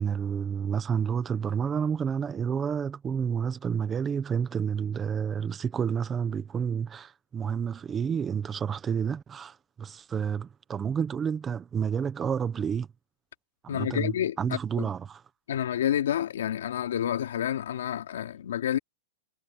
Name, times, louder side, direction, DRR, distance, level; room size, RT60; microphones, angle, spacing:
voice 1, 0.0-12.9 13.6-15.2, right 7 dB, 15° right, 0.8 m, -30 dB
voice 2, 13.7-14.4 14.8-14.9 15.5-18.8, left 10 dB, 80° left, 2.7 m, -29 dB
supercardioid pair, 170°, 0 cm